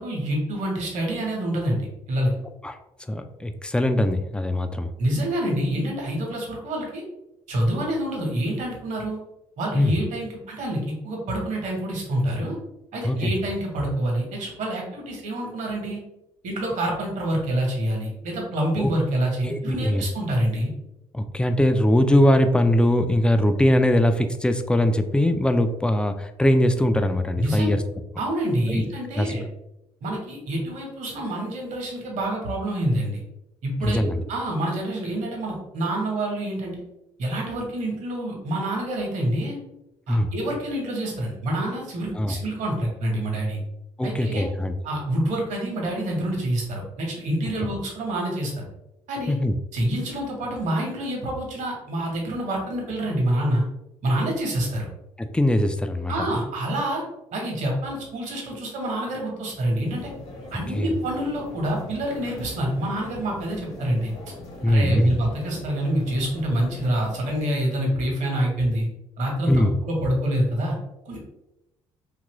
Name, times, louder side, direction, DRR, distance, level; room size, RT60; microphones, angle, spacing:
voice 1, 0.0-2.3 5.0-7.0 7.5-9.2 9.6-12.6 12.9-16.0 16.4-20.7 27.4-27.7 28.2-29.4 30.0-33.2 33.6-34.0 34.3-36.7 37.2-39.6 40.1-43.6 44.0-44.5 44.8-48.7 49.1-49.4 49.7-53.6 54.0-54.9 56.1-57.0 57.3-60.1 60.5-64.1 64.7-68.9 69.2-70.8 71.0-71.2, right 1 dB, 60° right, 0 dB, 1.0 m, -27 dB
voice 2, 3.1-4.9 9.7-10.0 13.0-13.3 18.8-18.9 19.4-20.0 21.1-27.8 28.7-28.8 29.2-29.3 33.8-34.2 40.1-40.3 42.2-42.3 44.0-44.7 49.3-49.6 55.2-56.3 60.7-60.9 64.6-65.2 69.5-69.7, left 1 dB, 5° left, 8 dB, 0.3 m, -21 dB
sound 1, 59.9-67.5, left 1 dB, 50° left, 1.0 m, -41 dB
2.9 x 2.5 x 2.9 m, 0.88 s
hypercardioid pair, 50°, 14 cm